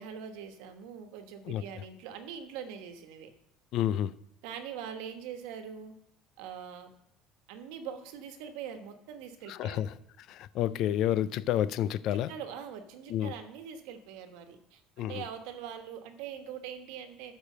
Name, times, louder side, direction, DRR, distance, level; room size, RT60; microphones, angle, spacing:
voice 1, 0.0-3.3 4.4-5.9 6.4-6.9 7.5-9.9 12.1-17.4, right 8 dB, 75° right, 1.4 m, -43 dB
voice 2, 3.7-4.1 9.5-9.9 10.3-12.3 13.1-13.3 15.0-15.2, left 11 dB, 45° left, 0.4 m, -29 dB
13.5 x 5.0 x 6.7 m
cardioid pair, 175°, 0 cm